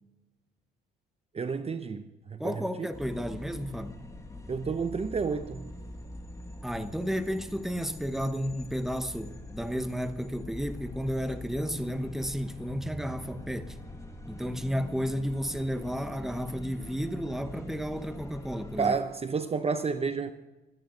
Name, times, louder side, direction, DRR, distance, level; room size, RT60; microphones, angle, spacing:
voice 1, 1.3-2.9 4.5-5.7 18.8-20.3, right 5 dB, 30° right, 0.7 m, -30 dB
voice 2, 2.4-4.0 6.6-13.8 14.3-18.9, equal, ahead, 1.1 m, -32 dB
sound 1, 2.9-18.8, left 1 dB, 15° left, 1.9 m, -44 dB
24.5 x 9.7 x 3.9 m
cardioid pair, 90°, 20 cm